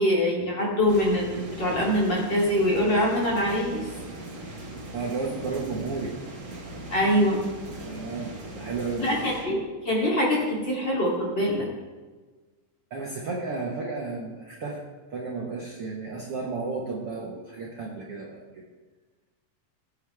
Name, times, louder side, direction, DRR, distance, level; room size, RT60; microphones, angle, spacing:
voice 1, 0.0-3.8 6.9-7.4 9.0-9.6 9.8-11.7, left 1 dB, 30° left, -4 dB, 3.6 m, -24 dB
sound 1, 0.9-9.4, right 1 dB, 30° right, 1.5 m, -40 dB
voice 2, 4.9-6.1 7.8-9.1 12.9-14.8 15.1-18.6, right 4 dB, 50° right, -3 dB, 2.0 m, -33 dB
21.0 x 9.1 x 3.6 m, 1.3 s
omnidirectional pair, 4.0 m